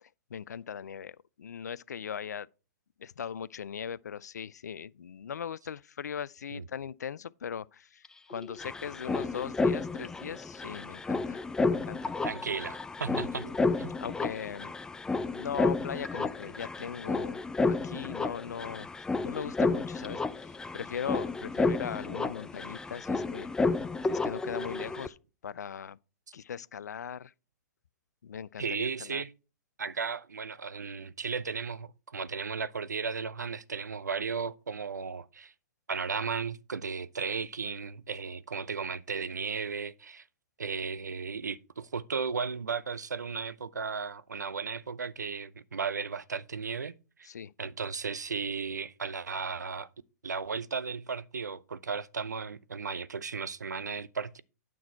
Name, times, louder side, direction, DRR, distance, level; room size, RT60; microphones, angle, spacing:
voice 1, 0.0-2.5 3.0-12.3 13.1-13.5 14.0-14.7 15.3-18.9 19.2-23.5 24.1-25.2 25.4-26.0 26.3-27.3 28.2-29.2 47.3-47.5, left 8 dB, 80° left, 0.4 m, -39 dB
sound 1, 8.0-8.1 8.3-25.1, left 3 dB, 5° left, 0.4 m, -31 dB
voice 2, 12.2-13.5 13.8-13.9 28.6-29.3 29.8-35.5 35.9-40.2 40.6-46.9 47.6-49.9 50.2-54.4, right 5 dB, 90° right, 0.6 m, -35 dB
9.3 x 6.1 x 4.4 m
hypercardioid pair, 120°, 9 cm